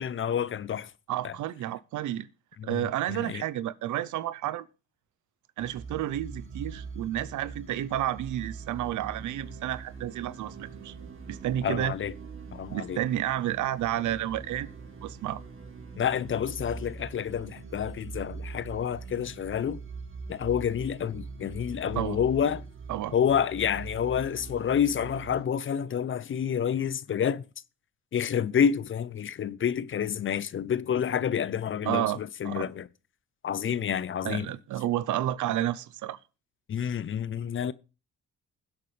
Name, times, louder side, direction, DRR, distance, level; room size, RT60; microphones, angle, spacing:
voice 1, 0.0-0.9 1.2-1.3 2.6-3.4 11.6-12.1 12.5-13.0 16.0-19.8 20.3-22.6 23.1-27.4 28.1-32.9 33.4-34.5 36.7-37.7, left 8 dB, 40° left, 0.6 m, -29 dB
voice 2, 1.1-2.3 2.6-4.7 5.6-10.9 11.3-11.9 12.7-14.7 15.0-15.4 22.0-22.2 22.9-23.1 31.8-32.2 32.4-32.7 34.2-36.2, right 12 dB, 75° right, 0.8 m, -31 dB
sound 1, 5.6-25.4, right 4 dB, 40° right, 2.7 m, -42 dB
21.0 x 8.1 x 3.3 m
cardioid pair, 90°, 30 cm